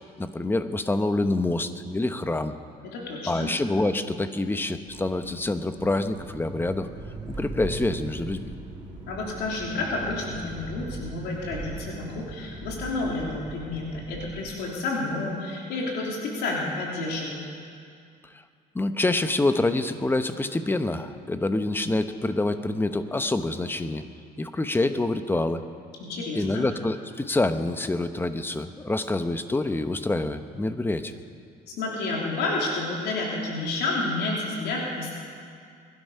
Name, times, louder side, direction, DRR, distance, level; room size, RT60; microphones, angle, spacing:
voice 1, 0.0-2.5 3.3-6.9 7.3-8.5 18.7-24.0 24.4-25.6 26.3-31.1, left 2 dB, 10° left, 9 dB, 0.9 m, -26 dB
voice 2, 2.8-3.5 9.1-17.4 26.0-26.6 31.8-35.1, left 2 dB, 80° left, -2 dB, 3.2 m, -30 dB
sound 1, 4.9-14.5, right 2 dB, 25° right, 3.5 m, -40 dB
22.0 x 12.0 x 5.6 m, 2.3 s
cardioid pair, 110°, 17 cm